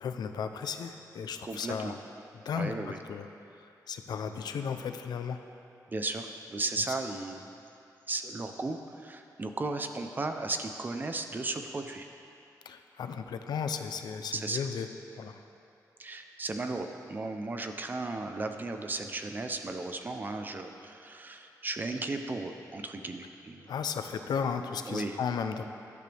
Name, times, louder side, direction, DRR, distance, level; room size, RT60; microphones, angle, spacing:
voice 1, 0.0-2.0 2.3-3.3 3.6-5.4 6.9-7.0 12.6-14.9 15.1-15.4 23.7-25.6, left 6 dB, 85° left, 7 dB, 0.7 m, -35 dB
voice 2, 1.4-1.9 2.5-3.0 5.9-7.5 8.1-12.0 14.3-14.6 16.0-23.7 24.9-25.2, right 3 dB, 25° right, 6 dB, 0.7 m, -35 dB
17.5 x 12.0 x 3.5 m, 2.6 s
wide cardioid pair, 155°, 7 cm